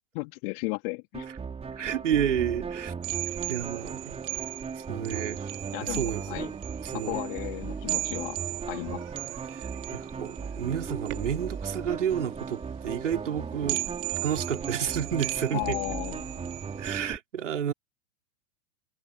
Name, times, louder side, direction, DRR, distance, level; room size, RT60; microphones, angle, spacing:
voice 1, 0.1-1.3 5.7-6.5 6.9-9.0 15.5-16.5, left 32 dB, 50° left, 3.1 m, -35 dB
sound 1, 1.1-17.2, right 5 dB, 15° right, 4.8 m, -37 dB
voice 2, 1.8-2.9 3.5-4.2 4.8-5.4 5.8-6.5 6.8-7.2 9.5-13.8 14.2-15.8 16.8-17.7, right 9 dB, 75° right, 3.2 m, -30 dB
sound 2, 3.0-17.0, right 26 dB, 50° right, 2.4 m, -38 dB
hypercardioid pair, 100°, 36 cm